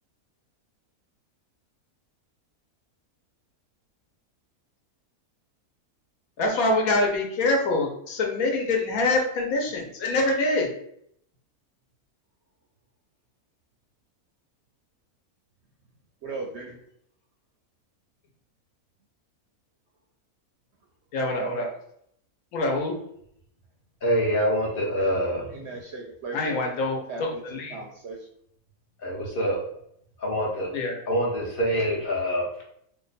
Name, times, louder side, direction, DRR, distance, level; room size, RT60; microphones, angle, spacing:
voice 1, 6.4-10.7 21.1-21.7 22.5-23.0 26.3-27.8 30.7-31.0, left 2 dB, 75° left, 1 dB, 1.2 m, -25 dB
voice 2, 16.2-16.8 25.0-25.2 25.5-26.6 27.1-28.3, right 3 dB, 65° right, 0 dB, 0.7 m, -37 dB
voice 3, 24.0-25.5 29.0-29.6 30.2-30.7 31.1-32.6, equal, 50° left, -2 dB, 0.8 m, -25 dB
2.9 x 2.2 x 3.9 m, 0.71 s
omnidirectional pair, 1.6 m